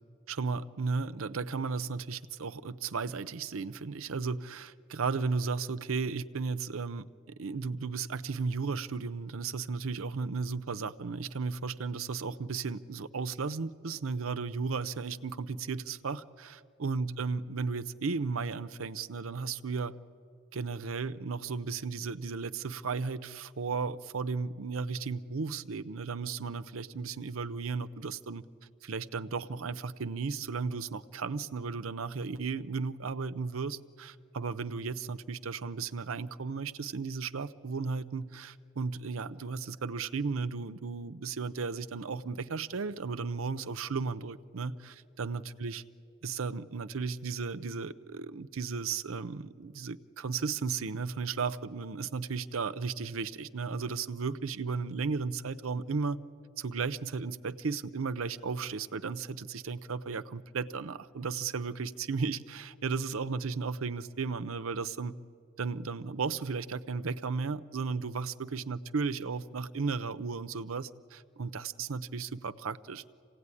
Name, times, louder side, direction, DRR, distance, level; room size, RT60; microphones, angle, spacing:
voice 1, 0.3-7.1 7.4-20.0 20.5-28.4 28.8-45.8 46.2-56.2 56.6-65.1 65.6-73.1, right 4 dB, 85° right, 13 dB, 0.7 m, -35 dB
26.5 x 17.0 x 9.7 m, 2.6 s
head